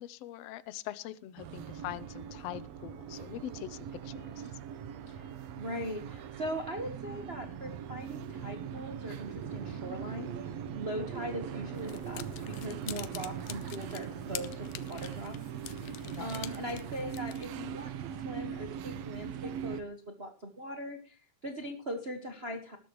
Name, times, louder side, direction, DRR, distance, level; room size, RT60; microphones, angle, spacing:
voice 1, 0.0-4.5 16.0-16.4, left 13 dB, 70° left, 16 dB, 1.7 m, -43 dB
sound 1, 1.4-19.8, right 8 dB, 65° right, 1.9 m, -41 dB
voice 2, 5.1-15.4 15.8-22.8, equal, 35° right, 5 dB, 1.0 m, -40 dB
sound 2, 11.7-17.5, left 14 dB, 85° left, 2.3 m, -46 dB
20.0 x 11.5 x 3.1 m, 0.34 s
omnidirectional pair, 3.5 m